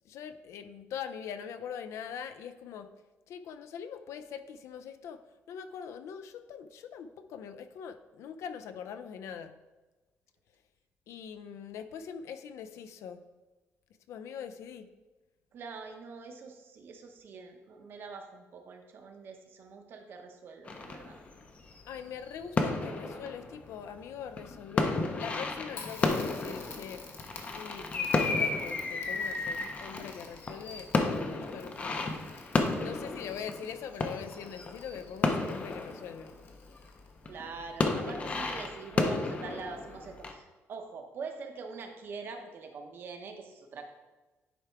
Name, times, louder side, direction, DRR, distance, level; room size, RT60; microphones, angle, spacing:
voice 1, 0.1-2.9 3.3-5.2 5.5-9.5 11.1-13.2 14.1-14.9 21.9-27.0 27.5-32.2 32.7-36.3, left 7 dB, 70° left, 10 dB, 0.5 m, -42 dB
voice 2, 15.5-21.2 37.2-43.9, right 4 dB, 45° right, 5 dB, 0.8 m, -44 dB
sound 1, 20.7-36.9 37.2-40.3, left 3 dB, 25° left, 0.6 m, -33 dB
Crackle, 25.7-37.3, left 4 dB, 50° left, 1.1 m, -51 dB
10.0 x 3.4 x 4.6 m, 1.2 s
cardioid pair, 170°, 5 cm